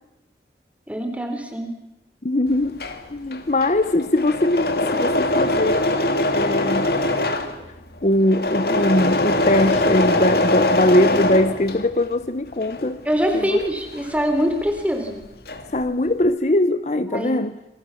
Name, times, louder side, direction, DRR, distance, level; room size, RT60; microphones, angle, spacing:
voice 1, 0.9-1.8 13.1-15.2 17.1-17.4, equal, 10° right, 3.8 m, -23 dB
voice 2, 2.2-2.8 3.1-5.9 6.3-6.9 8.0-13.0 13.3-13.6 15.7-17.5, left 1 dB, 40° left, 0.8 m, -21 dB
Engine / Mechanisms, 2.5-12.1 12.5-14.8 15.1-15.8, left 1 dB, 60° left, 2.5 m, -22 dB
27.5 x 24.0 x 7.1 m
head